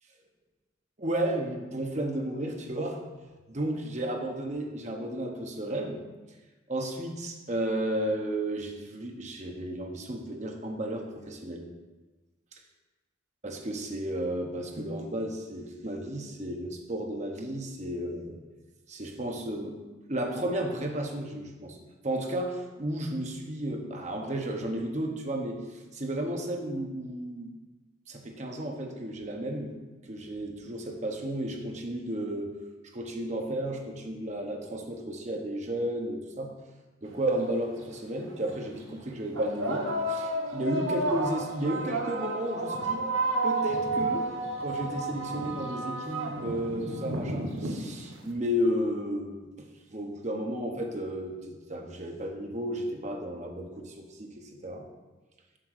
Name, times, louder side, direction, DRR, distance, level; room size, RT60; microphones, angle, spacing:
voice 1, 1.0-3.0 3.5-6.0 6.7-11.6 13.4-18.4 18.9-19.8 20.1-21.8 22.0-27.5 28.1-29.8 30.0-32.6 32.9-36.5 37.0-43.1 43.4-44.2 44.6-54.8, right 1 dB, 35° right, 2 dB, 0.9 m, -33 dB
sound 1, 37.3-37.4 38.3-38.5 39.3-48.2, right 2 dB, 85° right, 1.0 m, -31 dB
7.5 x 3.7 x 6.5 m, 1.2 s
head